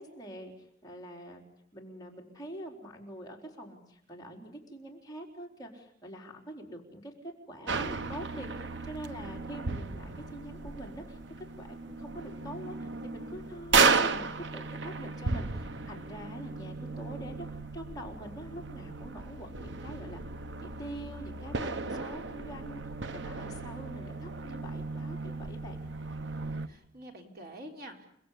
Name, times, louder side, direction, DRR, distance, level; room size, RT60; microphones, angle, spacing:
voice 1, 0.0-1.4 1.7-7.1 7.5-17.5 17.7-20.2 20.6-22.8 23.1-25.8, right 1 dB, 20° left, -1 dB, 4.3 m, -44 dB
sound 1, 7.7-26.7, right 4 dB, 70° right, 1.0 m, -34 dB
voice 2, 26.3-28.1, right 1 dB, 50° right, 3 dB, 3.8 m, -47 dB
29.5 x 19.5 x 8.5 m, 0.73 s
head